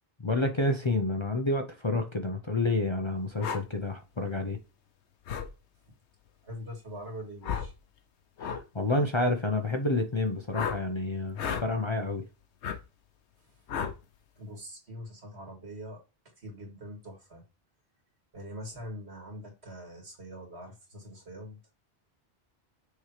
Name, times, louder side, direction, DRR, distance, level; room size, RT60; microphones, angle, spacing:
voice 1, 0.2-4.6 8.4-12.2, left 2 dB, 30° left, 0.7 m, -29 dB
sound 1, 3.4-3.6 5.3-5.5 7.4-7.7 8.4-8.6 10.5-10.8 11.4-11.7 12.6-12.8 13.7-14.0, left 7 dB, 85° left, 1.1 m, -32 dB
voice 2, 6.4-7.7 13.5-13.6 14.4-16.0 16.4-17.4 18.3-21.6, equal, 75° right, 2.6 m, -43 dB
6.5 x 3.1 x 4.9 m
omnidirectional pair, 1.1 m